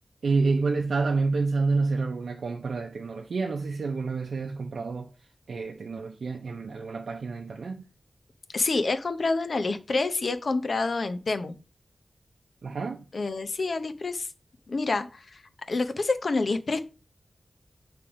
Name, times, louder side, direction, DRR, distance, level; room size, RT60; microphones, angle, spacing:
voice 1, 0.2-5.1 5.5-7.8 12.6-13.0, right 4 dB, 85° right, 0.6 m, -28 dB
voice 2, 8.5-11.6 13.1-14.3 14.7-15.4 15.7-16.8, left 3 dB, 60° left, 0.7 m, -27 dB
7.0 x 3.3 x 4.9 m
wide cardioid pair, 90°, 0 cm